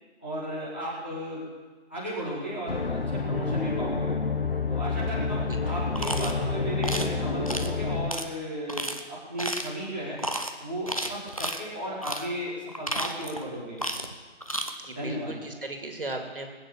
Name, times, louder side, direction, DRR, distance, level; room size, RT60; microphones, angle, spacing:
voice 1, 0.2-1.4 1.9-4.1 4.7-10.2 10.6-13.8 14.9-15.3, equal, 10° left, -10 dB, 1.4 m, -35 dB
sound 1, 2.7-8.1, left 4 dB, 50° left, 1.0 m, -28 dB
sound 2, 6.0-6.3 6.8-7.1 7.5-7.7 8.1-8.2 8.7-9.0 9.4-9.8 10.2-10.5 10.9-11.6 12.0-12.3 12.7-13.4 13.8-14.1 14.4-14.7, right 1 dB, 30° left, 0.7 m, -32 dB
voice 2, 14.8-16.5, right 2 dB, 50° right, 3 dB, 2.3 m, -36 dB
20.0 x 8.8 x 7.0 m, 1.3 s
figure-of-eight pair, 175°, 36 cm